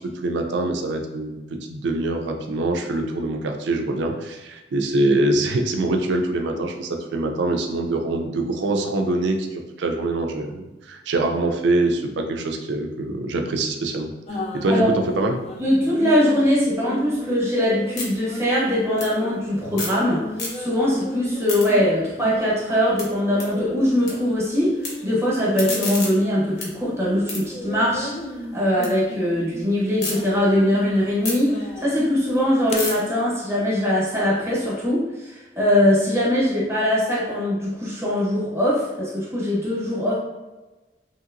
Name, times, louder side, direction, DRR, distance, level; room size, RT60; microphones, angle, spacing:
voice 1, 0.0-14.1 14.5-15.4, right 2 dB, 70° right, 4 dB, 0.4 m, -24 dB
sound 1, 14.3-26.5 26.8-32.8, left 1 dB, 35° left, 0.3 m, -36 dB
voice 2, 15.6-28.1 28.5-40.2, left 1 dB, 15° right, -7 dB, 0.8 m, -21 dB
sound 2, 17.1-20.0 20.3-20.9 21.2-24.1 24.4-24.9 25.3-28.9 29.3-30.1 30.6-34.7, left 2 dB, 60° left, 0.8 m, -35 dB
3.0 x 2.8 x 2.5 m, 1.1 s
head